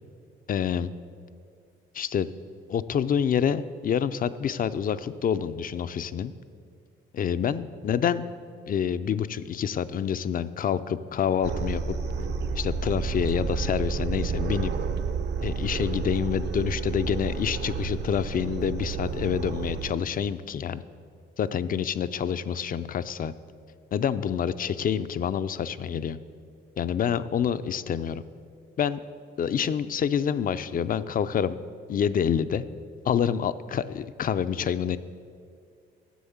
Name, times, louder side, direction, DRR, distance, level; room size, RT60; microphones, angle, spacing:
voice 1, 0.5-0.9 1.9-2.3 2.7-6.3 7.1-8.3 8.6-12.0 12.5-14.7 15.4-20.8 21.4-23.3 23.9-26.2 26.8-28.2 28.8-29.0 29.4-31.6 31.9-32.6 33.0-35.0, left 8 dB, 45° left, 14 dB, 0.5 m, -27 dB
sound 1, 11.4-19.9, right 5 dB, 60° right, 0.7 m, -30 dB
10.0 x 7.2 x 7.1 m, 2.2 s
cardioid pair, 90°, 20 cm